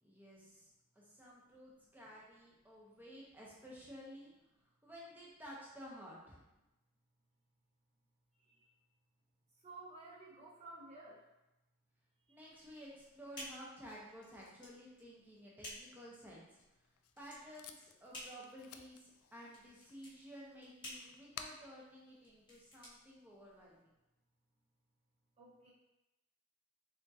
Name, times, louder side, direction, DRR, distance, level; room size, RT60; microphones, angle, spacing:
voice 1, 0.0-4.3 4.6-6.5 12.3-16.6 17.2-23.9, equal, 10° right, -5 dB, 0.8 m, -54 dB
voice 2, 9.6-11.2 25.4-25.7, right 2 dB, 30° right, -7 dB, 0.9 m, -53 dB
sound 1, 12.5-23.8, left 1 dB, 20° left, 1.3 m, -54 dB
Packing tape duct tape, 16.6-23.1, left 7 dB, 75° left, 0.3 m, -57 dB
3.6 x 3.5 x 2.7 m, 0.95 s
head